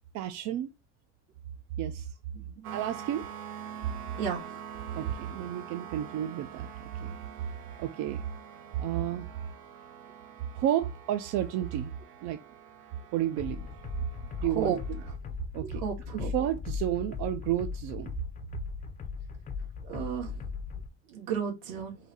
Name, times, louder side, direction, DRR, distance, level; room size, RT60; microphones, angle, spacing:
voice 1, 0.1-0.7 1.8-2.1 2.7-3.2 4.9-6.7 7.0-7.2 7.8-8.2 8.8-9.3 10.5-11.9 12.2-12.4 13.1-13.7 14.4-14.8 15.5-15.8 16.1-18.1, right 11 dB, 50° right, 0.4 m, -31 dB
sound 1, 2.6-15.2, right 8 dB, 85° right, 1.0 m, -45 dB
sound 2, 13.4-20.9, left 5 dB, 20° left, 0.5 m, -38 dB
voice 2, 15.6-16.3 19.9-20.4 21.1-22.0, right 7 dB, 65° right, 1.9 m, -33 dB
4.0 x 2.7 x 4.6 m
cardioid pair, 140°, 39 cm